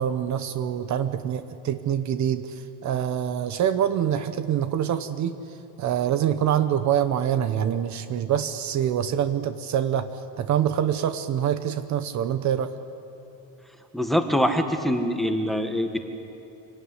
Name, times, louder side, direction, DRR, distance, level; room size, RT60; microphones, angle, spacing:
voice 1, 0.0-5.4 5.8-12.7, right 9 dB, 45° right, 10 dB, 1.0 m, -25 dB
voice 2, 13.9-16.0, equal, ahead, 5 dB, 1.5 m, -24 dB
27.0 x 18.0 x 9.8 m, 2.8 s
cardioid pair, 155°, 40 cm